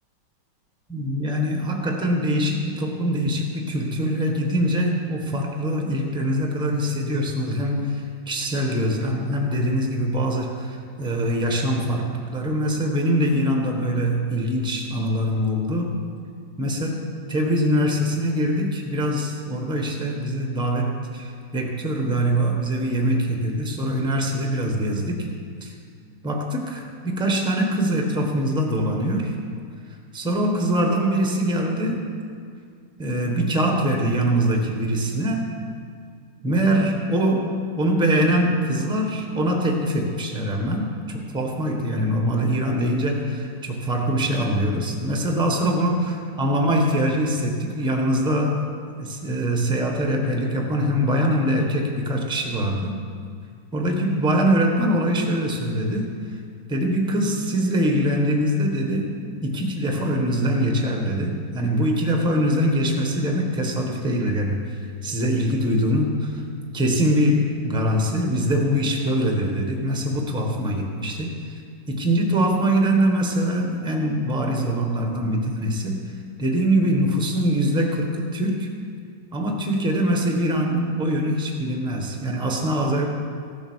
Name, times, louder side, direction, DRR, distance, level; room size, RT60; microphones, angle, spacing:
voice 1, 0.9-16.0 16.6-25.3 25.6-25.7 26.2-29.3 30.1-32.1 33.0-35.5 36.4-48.6 49.0-53.0 53.7-56.0 56.7-59.2 59.4-64.8 65.0-66.4 66.7-71.5 71.9-76.0 76.4-78.7 79.3-83.1, equal, 5° right, 1 dB, 1.1 m, -23 dB
15.5 x 7.1 x 6.3 m, 2.2 s
omnidirectional pair, 1.9 m